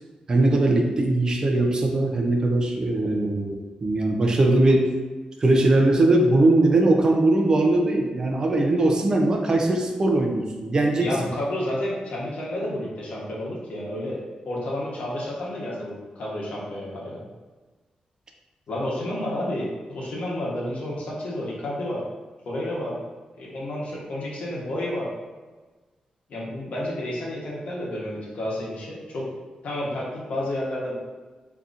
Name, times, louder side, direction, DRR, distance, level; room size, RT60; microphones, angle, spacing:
voice 1, 0.3-4.9 5.4-11.1, right 2 dB, 30° right, 1 dB, 0.4 m, -20 dB
voice 2, 10.9-17.2 18.7-22.0 22.5-23.0 23.4-25.1 26.3-29.3 29.6-30.9, left 1 dB, 70° left, -5 dB, 1.0 m, -30 dB
3.8 x 2.8 x 2.4 m, 1.3 s
wide cardioid pair, 155°, 2 cm